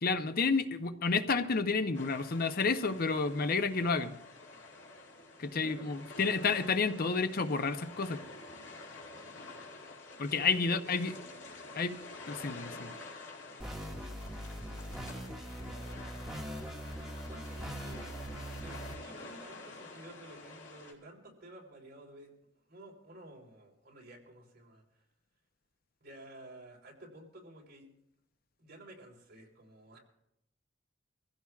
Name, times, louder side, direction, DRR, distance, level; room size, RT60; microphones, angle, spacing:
voice 1, 0.0-4.1 5.4-8.2 10.2-11.1 11.8-12.0 12.3-12.9, left 4 dB, 50° left, 10 dB, 0.7 m, -30 dB
sound 1, 1.9-20.9, left 3 dB, 75° left, 2.6 m, -49 dB
voice 2, 5.5-6.4 10.4-11.4 14.6-16.1 17.3-18.0 18.5-22.3 22.7-25.0 26.0-27.9 28.6-30.0, right 1 dB, 55° right, -1 dB, 3.8 m, -53 dB
sound 2, 13.6-18.9, right 1 dB, ahead, 1.8 m, -42 dB
24.0 x 15.5 x 2.4 m, 0.80 s
head